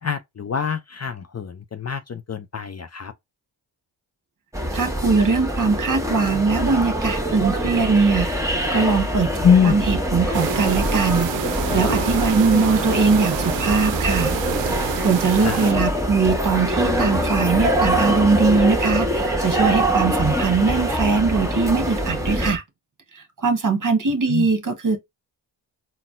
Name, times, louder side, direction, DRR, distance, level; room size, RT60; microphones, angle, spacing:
voice 1, 0.0-3.1 9.4-9.8 15.4-15.7 24.3-24.5, left 7 dB, 35° left, 0.5 m, -23 dB
sound 1, 4.5-22.5, equal, 5° right, 1.2 m, -24 dB
voice 2, 4.7-9.3 9.6-14.3 14.8-22.6 23.1-25.0, right 4 dB, 40° right, 1.1 m, -21 dB
sound 2, 10.3-15.7, right 10 dB, 70° right, 0.6 m, -28 dB
sound 3, 10.4-22.6, right 1 dB, 15° left, 1.1 m, -37 dB
4.0 x 2.1 x 2.5 m
cardioid pair, 45°, 47 cm